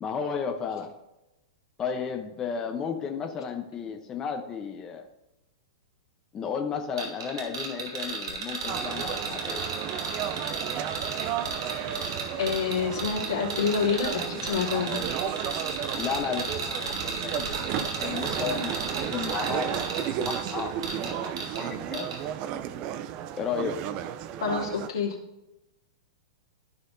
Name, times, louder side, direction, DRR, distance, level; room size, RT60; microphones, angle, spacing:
voice 1, 0.0-0.9 1.8-5.1 6.3-9.7 16.0-22.1 23.4-23.9, left 6 dB, 25° left, 3 dB, 0.9 m, -34 dB
sound 1, 7.0-21.6 21.9-22.2, right 4 dB, 80° right, 2.5 m, -34 dB
sound 2, 8.7-24.9, right 10 dB, 40° right, 0.5 m, -33 dB
voice 2, 12.4-15.0 24.4-25.2, left 6 dB, 80° left, -3 dB, 2.9 m, -27 dB
15.0 x 5.5 x 2.7 m, 0.95 s
hypercardioid pair, 120°, 3 cm